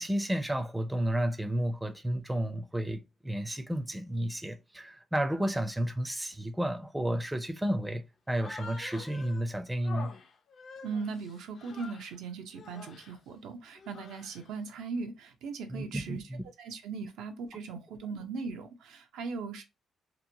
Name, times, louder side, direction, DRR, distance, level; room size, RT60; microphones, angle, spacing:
voice 1, 0.0-10.1 15.7-16.4, right 1 dB, 10° right, 0.4 m, -32 dB
Human voice, 8.3-9.4 9.8-12.2 12.5-13.2 13.7-14.5, left 4 dB, 55° left, 0.5 m, -47 dB
voice 2, 10.8-16.2 16.6-19.6, right 4 dB, 85° right, 0.5 m, -39 dB
2.9 x 2.1 x 2.6 m
cardioid pair, 90°, 0 cm